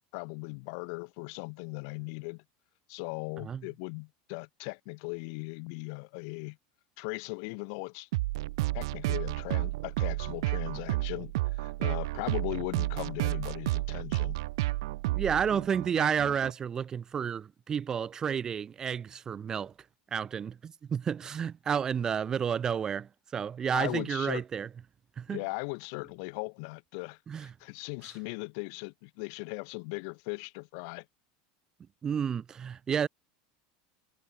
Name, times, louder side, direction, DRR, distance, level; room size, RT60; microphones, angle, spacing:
voice 1, 0.0-2.4 2.9-6.6 7.0-8.1 8.7-14.4 23.7-24.4 25.3-31.0, left 38 dB, 65° left, 2.7 m, -38 dB
sound 1, 8.1-16.5, right 19 dB, 75° right, 0.7 m, -31 dB
voice 2, 15.1-19.7 20.1-24.7 25.2-25.4 27.3-27.5 32.0-33.1, right 7 dB, 25° right, 0.9 m, -31 dB
supercardioid pair, 130°, 3 cm